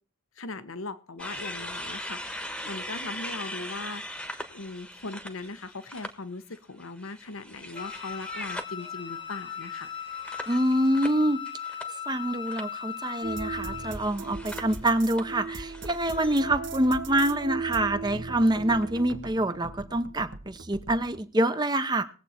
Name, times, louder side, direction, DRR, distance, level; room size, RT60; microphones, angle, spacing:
voice 1, 0.4-9.9, left 3 dB, 80° left, 12 dB, 1.1 m, -39 dB
sound 1, 1.2-6.1 6.5-12.2 12.5-12.8 13.7-16.4, equal, 5° left, 1.2 m, -40 dB
Wind instrument woodwind instrument, 7.7-14.0, left 8 dB, 25° left, 0.8 m, -38 dB
voice 2, 10.5-11.4 12.1-22.0, right 1 dB, 20° right, 10 dB, 0.8 m, -26 dB
sound 2, 13.2-21.2, right 3 dB, 60° right, 1.3 m, -38 dB
20.0 x 7.9 x 4.3 m, 0.37 s
head